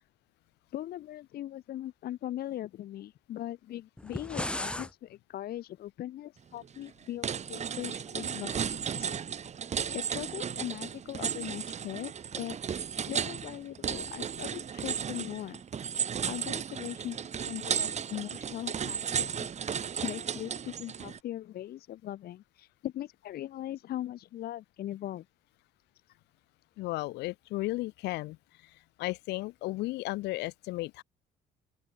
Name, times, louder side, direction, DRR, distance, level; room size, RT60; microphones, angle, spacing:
voice 1, 0.7-9.1 9.9-12.6 13.1-15.6 16.3-25.3 26.1-26.2, left 13 dB, 65° left, 4.0 m, -40 dB
sound 1, 4.0-4.9, left 1 dB, 5° left, 2.8 m, -35 dB
sound 2, 6.6-6.9 7.2-21.2, right 7 dB, 40° right, 6.1 m, -34 dB
voice 2, 26.8-28.4 29.0-31.0, left 19 dB, 90° left, 7.4 m, -34 dB
open air
cardioid pair, 110°, 17 cm